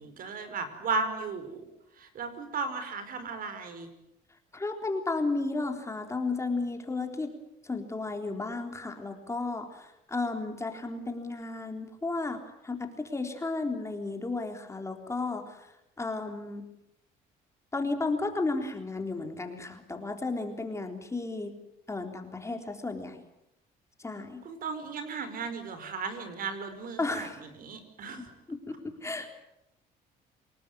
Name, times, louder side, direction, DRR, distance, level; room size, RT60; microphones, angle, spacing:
voice 1, 0.0-1.6 2.0-3.9 24.4-28.2, right 4 dB, 55° right, 10 dB, 5.1 m, -35 dB
voice 2, 4.5-7.3 7.6-15.7 16.0-16.6 17.7-21.5 21.9-23.2 24.0-24.4 27.0-27.4 28.2-28.7 29.0-29.3, left 3 dB, 15° left, 5 dB, 3.6 m, -33 dB
27.5 x 19.5 x 9.4 m, 0.84 s
cardioid pair, 110°, 17 cm